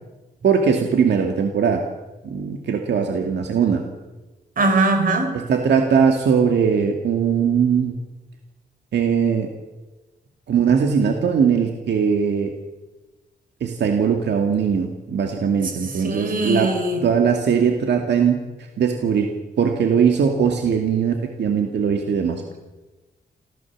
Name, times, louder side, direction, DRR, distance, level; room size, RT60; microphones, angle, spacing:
voice 1, 0.4-1.8 2.2-3.8 5.3-8.0 8.9-9.5 10.5-12.5 13.6-16.7 17.0-18.4 18.8-19.3 19.6-22.4, right 6 dB, 85° right, 3 dB, 2.2 m, -20 dB
voice 2, 4.6-5.3 15.9-17.0, right 2 dB, 55° right, 5 dB, 5.2 m, -21 dB
27.5 x 15.5 x 7.4 m, 1.2 s
wide cardioid pair, 160°, 17 cm